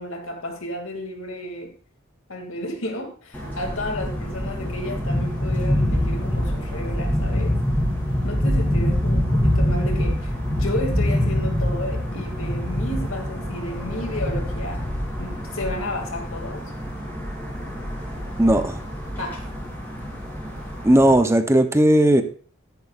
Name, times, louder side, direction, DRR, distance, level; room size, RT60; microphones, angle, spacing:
voice 1, 0.0-1.7 2.3-7.6 8.2-14.8 15.2-16.6 19.2-19.4, left 1 dB, 80° left, 3 dB, 2.4 m, -32 dB
sound 1, 3.3-21.1, equal, 10° left, 3.3 m, -25 dB
voice 2, 18.4-18.8 20.8-22.2, right 1 dB, 15° right, 9 dB, 0.7 m, -16 dB
13.0 x 10.5 x 2.5 m, 0.42 s
head